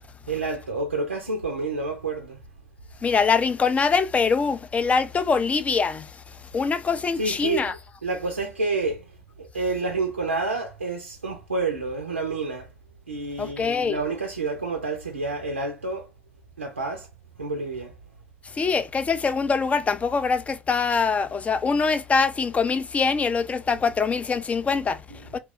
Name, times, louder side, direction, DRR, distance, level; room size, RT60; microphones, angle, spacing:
voice 1, 0.3-2.4 7.2-9.0 9.4-12.7 13.1-16.1 16.6-17.1 17.4-17.9 25.1-25.3, right 3 dB, 90° right, 0.4 m, -29 dB
voice 2, 3.0-6.1 6.5-7.7 13.4-14.0 18.6-25.0 25.3-25.4, left 5 dB, 20° left, 0.3 m, -23 dB
2.8 x 2.0 x 2.4 m
figure-of-eight pair, 70°, 6 cm